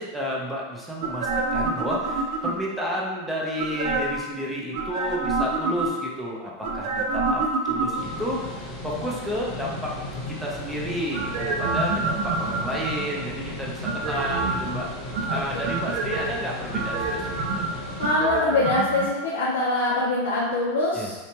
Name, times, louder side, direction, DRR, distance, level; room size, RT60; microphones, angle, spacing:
voice 1, 0.0-17.7 20.9-21.1, equal, 5° right, -4 dB, 0.6 m, -31 dB
sound 1, 1.0-2.8 3.6-4.3 4.7-6.2 6.6-8.3 11.1-13.2 13.8-14.7 15.1-16.3 16.7-19.1 19.4-19.5, right 3 dB, 60° right, 0.4 m, -27 dB
sound 2, 7.9-18.1, left 2 dB, 40° left, 0.9 m, -35 dB
voice 2, 18.0-21.1, left 2 dB, 85° left, -6 dB, 0.5 m, -23 dB
2.8 x 2.2 x 2.7 m, 1.2 s
supercardioid pair, 130°, 0 cm